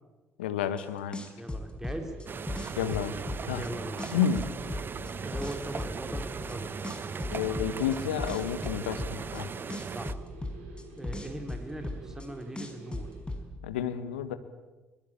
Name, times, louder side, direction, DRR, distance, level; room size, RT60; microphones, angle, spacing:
voice 1, 0.4-1.2 2.8-3.2 3.5-3.7 4.1-4.4 7.3-9.5 13.6-14.4, left 8 dB, 80° left, 11 dB, 1.4 m, -30 dB
sound 1, 0.8-0.9 1.1-3.7 4.0-6.5 6.8-9.4 9.7-12.3 12.6-13.4, left 2 dB, 15° left, 5.3 m, -36 dB
voice 2, 1.4-2.1 3.6-4.0 5.2-6.7 9.8-10.2 10.6-13.1, right 1 dB, 10° right, 5 dB, 3.2 m, -40 dB
sound 2, 1.9-13.2, right 4 dB, 70° right, 7.3 m, -49 dB
sound 3, 2.3-10.1, right 6 dB, 35° right, 0.8 m, -38 dB
22.5 x 21.5 x 8.6 m, 1.2 s
figure-of-eight pair, 45°, 6 cm